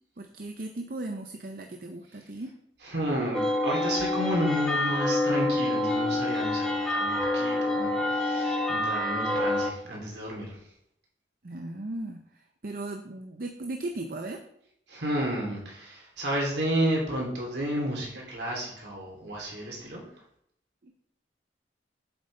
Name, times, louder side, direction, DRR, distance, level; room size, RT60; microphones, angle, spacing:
voice 1, 0.2-2.5 11.4-14.4 20.8-20.9, right 2 dB, 50° right, 4 dB, 0.6 m, -37 dB
voice 2, 2.8-10.6 14.9-20.1, right 1 dB, 70° right, -2 dB, 3.0 m, -31 dB
sound 1, 3.3-9.7, left 2 dB, 5° left, 1.0 m, -27 dB
7.9 x 7.6 x 3.3 m, 0.70 s
head